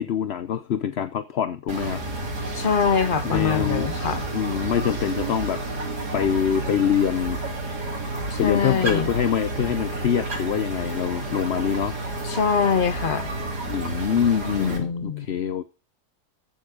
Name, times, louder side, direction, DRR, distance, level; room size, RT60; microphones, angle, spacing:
voice 1, 0.0-2.0 3.2-3.9 4.3-5.6 6.1-7.4 8.4-12.0 13.7-15.6, left 8 dB, 55° left, 0.8 m, -25 dB
sound 1, 1.7-14.8, right 2 dB, 80° right, 3.6 m, -30 dB
voice 2, 2.6-4.2 8.3-9.1 12.2-13.3 14.6-15.3, left 6 dB, 35° left, 1.1 m, -24 dB
15.0 x 7.3 x 5.0 m
omnidirectional pair, 1.7 m